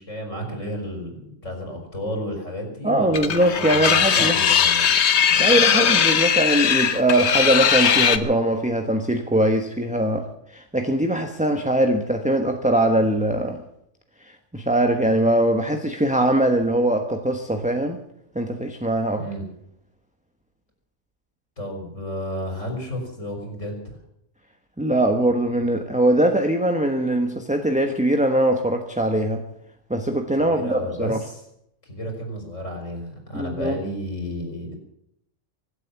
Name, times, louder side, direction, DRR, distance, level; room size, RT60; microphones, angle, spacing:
voice 1, 0.0-4.9 19.2-19.4 21.6-24.0 30.4-31.4 31.8-34.7, equal, 80° left, 2 dB, 5.1 m, -32 dB
voice 2, 2.8-4.4 5.4-13.6 14.2-18.0 18.3-19.2 24.8-29.4 29.9-31.2 33.3-33.8, right 1 dB, 5° right, 4 dB, 1.1 m, -21 dB
sound 1, 3.1-8.2, left 8 dB, 60° left, 1.2 m, -19 dB
24.5 x 8.1 x 7.1 m, 0.77 s
omnidirectional pair, 1.3 m